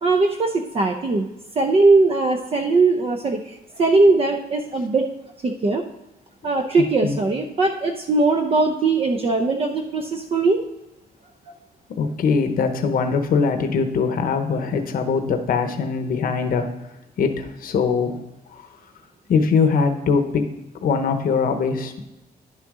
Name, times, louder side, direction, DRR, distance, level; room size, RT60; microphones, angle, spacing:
voice 1, 0.0-1.3 1.6-5.1 5.4-5.9 6.4-10.6 11.5-11.6, right 3 dB, 35° right, 3 dB, 0.7 m, -20 dB
voice 2, 12.0-16.7 17.2-18.2 18.5-18.7 19.3-20.5 20.8-22.0, left 5 dB, 60° left, 6 dB, 0.9 m, -22 dB
10.5 x 6.5 x 3.7 m, 0.95 s
wide cardioid pair, 175°, 17 cm